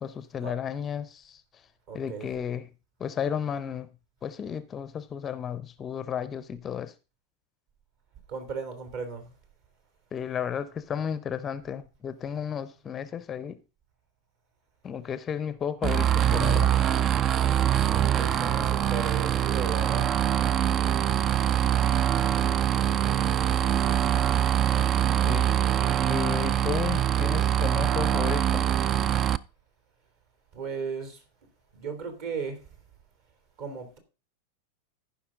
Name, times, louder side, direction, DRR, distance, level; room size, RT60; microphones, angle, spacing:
voice 1, 0.0-1.4 1.9-2.7 3.0-3.9 4.2-6.9 10.1-13.6 14.8-16.7 24.7-24.9 25.2-25.5 26.1-28.7, left 8 dB, 25° left, 0.6 m, -33 dB
voice 2, 1.9-2.3 8.3-9.3 17.9-20.1 30.5-31.2 31.7-32.6 33.6-34.0, right 5 dB, 50° right, 2.9 m, -35 dB
sound 1, 15.8-29.4, right 10 dB, 30° right, 0.4 m, -24 dB
14.0 x 5.8 x 3.7 m
figure-of-eight pair, 90°, 0 cm